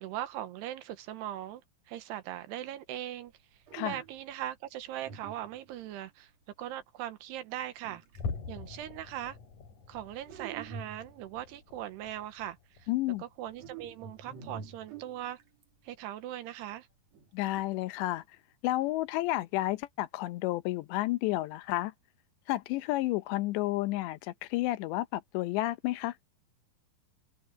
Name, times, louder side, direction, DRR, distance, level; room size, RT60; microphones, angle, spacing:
voice 1, 0.0-3.3 3.8-6.3 6.6-8.0 8.5-9.4 9.9-12.9 13.2-15.4 15.8-16.9, right 12 dB, 75° right, 3.0 m, -40 dB
sound 1, 3.3-3.4 3.7-4.3 5.0-5.9 7.8-8.3 10.3-11.4 13.5-15.6 17.1-17.6, right 6 dB, 45° right, 2.6 m, -46 dB
sound 2, 8.1-14.8 15.2-15.5 15.9-16.0 16.6-16.7, left 5 dB, 45° left, 5.0 m, -45 dB
voice 2, 12.9-13.2 17.3-18.2 18.6-21.9 22.5-26.1, left 17 dB, 80° left, 3.0 m, -31 dB
omnidirectional pair, 5.1 m